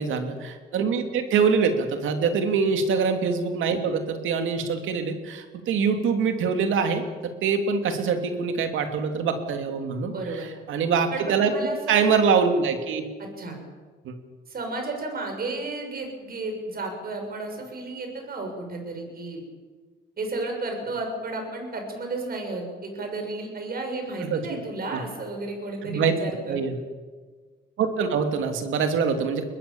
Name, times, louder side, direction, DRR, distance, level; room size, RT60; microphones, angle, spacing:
voice 1, 0.0-11.5 11.9-13.1 14.0-14.1 24.2-24.4 24.9-25.0 25.8-26.2 26.5-26.7 27.8-29.4, right 5 dB, 80° right, 6 dB, 2.9 m, -24 dB
voice 2, 10.0-10.5 11.1-12.0 13.2-13.6 14.5-19.4 20.2-26.6, right 2 dB, 50° right, 3 dB, 6.9 m, -33 dB
22.0 x 20.5 x 7.3 m, 1.4 s
cardioid pair, 90°, 20 cm